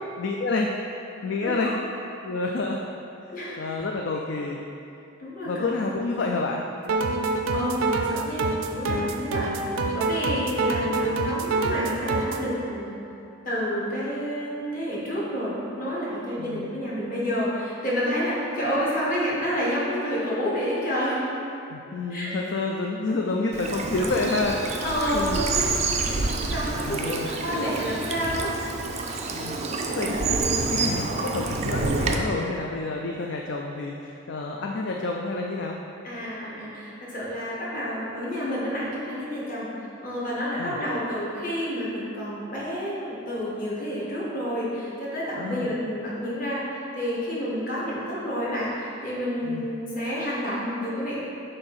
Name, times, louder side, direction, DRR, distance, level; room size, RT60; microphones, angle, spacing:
voice 1, 0.2-0.7 1.2-1.8 2.2-2.8 3.6-4.6 5.5-6.6 9.5-9.6 10.7-11.3 16.4-16.7 21.7-25.4 26.8-27.3 29.3-29.6 30.0-30.4 30.7-35.8 40.6-40.8 45.4-45.8 49.4-49.7, left 3 dB, 55° left, 0 dB, 0.4 m, -29 dB
voice 2, 1.4-1.7 3.3-3.9 5.2-5.7 7.5-9.6 9.9-13.0 13.4-21.2 22.1-22.3 24.8-28.5 36.0-39.7 40.0-51.2, equal, 40° left, -7 dB, 1.5 m, -29 dB
sound 1, 6.8-12.5, right 3 dB, 85° right, 0.5 m, -26 dB
Bird vocalization bird call bird song / Stream, 23.5-32.2, right 3 dB, 30° right, 0.4 m, -28 dB
7.5 x 2.7 x 5.8 m, 2.7 s
head